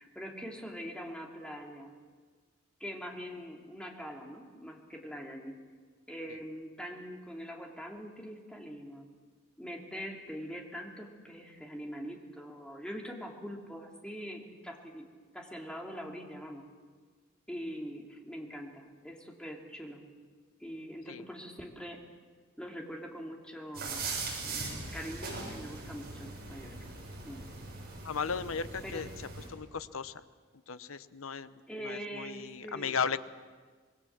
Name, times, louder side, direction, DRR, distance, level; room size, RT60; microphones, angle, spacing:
voice 1, 0.0-1.9 2.8-5.6 6.1-9.1 9.6-15.0 15.3-16.6 17.5-20.0 20.6-22.0 22.6-24.1 24.4-26.9 27.2-27.4 28.8-29.1 31.7-33.0, equal, 5° left, 0 dB, 2.8 m, -43 dB
sound 1, 23.7-29.5, right 3 dB, 50° right, 7.3 m, -40 dB
voice 2, 28.0-29.1 29.5-30.2 30.7-33.2, left 6 dB, 75° left, 13 dB, 0.9 m, -36 dB
26.0 x 21.0 x 7.4 m, 1.5 s
head